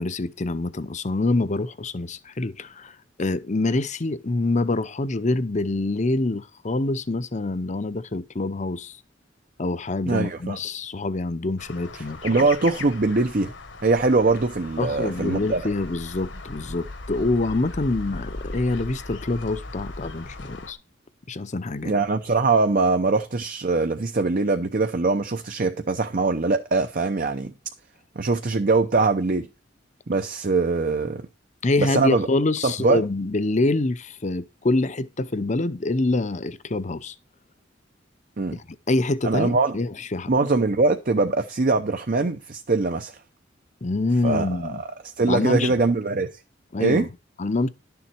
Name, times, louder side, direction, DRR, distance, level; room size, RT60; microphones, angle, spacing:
voice 1, 0.0-9.0 9.6-12.4 14.8-20.8 21.3-21.9 31.6-37.1 38.5-40.3 43.8-44.8 45.3-45.7 46.7-47.1 47.4-47.7, left 2 dB, 40° left, 0.7 m, -26 dB
voice 2, 10.1-10.6 12.2-13.5 13.8-15.6 21.8-27.5 28.2-29.5 30.1-31.3 31.8-32.3 32.6-33.0 38.4-38.6 39.2-39.8 40.3-43.2 44.2-44.9 45.2-46.4 46.8-47.1, right 3 dB, 50° right, 0.7 m, -22 dB
sound 1, 11.6-20.7, left 3 dB, 70° left, 1.5 m, -38 dB
11.5 x 7.1 x 4.4 m
head